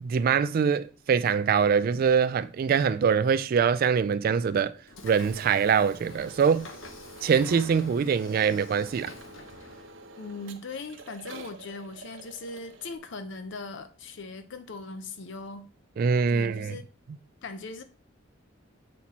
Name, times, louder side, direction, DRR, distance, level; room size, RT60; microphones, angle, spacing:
voice 1, 0.0-4.8 5.0-6.7 7.2-9.1 16.0-16.8, right 6 dB, 50° right, 0.3 m, -24 dB
Train / Sliding door, 4.9-9.9, left 3 dB, 85° left, 1.1 m, -47 dB
sound 1, 5.1-13.0, right 2 dB, 75° right, 0.9 m, -48 dB
voice 2, 10.2-15.7 16.3-16.8 17.4-17.8, left 3 dB, 65° left, 0.6 m, -39 dB
7.3 x 4.3 x 4.1 m
head